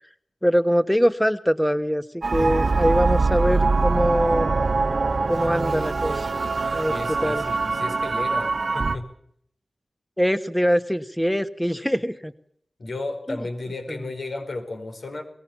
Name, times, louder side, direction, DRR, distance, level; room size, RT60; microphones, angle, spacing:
voice 1, 0.4-4.5 5.3-6.3 6.7-6.9 7.2-7.4 10.2-12.3 13.3-13.4 13.9-14.0, equal, 5° left, 11 dB, 1.3 m, -23 dB
sound 1, 2.2-9.0, right 3 dB, 70° right, 1.3 m, -23 dB
voice 2, 6.9-9.1 12.8-15.2, left 2 dB, 75° left, 5 dB, 5.0 m, -33 dB
22.5 x 19.5 x 7.4 m, 0.64 s
wide cardioid pair, 60°, 0 cm